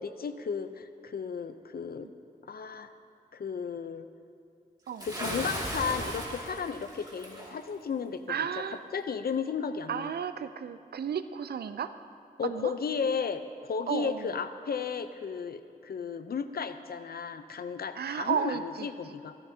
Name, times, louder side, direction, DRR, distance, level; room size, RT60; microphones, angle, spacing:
voice 1, 0.0-2.1 2.4-2.9 3.3-4.1 5.0-8.5 8.9-10.1 12.4-19.4, left 6 dB, 75° left, 10 dB, 0.6 m, -34 dB
Bathtub (filling or washing) / Splash splatter, 5.0-7.5, right 1 dB, 25° right, 2.3 m, -36 dB
voice 2, 8.3-8.8 9.9-11.9 12.4-12.7 13.9-14.4 18.0-19.2, right 7 dB, 90° right, 12 dB, 0.4 m, -33 dB
14.5 x 13.5 x 2.8 m, 2.5 s
wide cardioid pair, 70°, 16 cm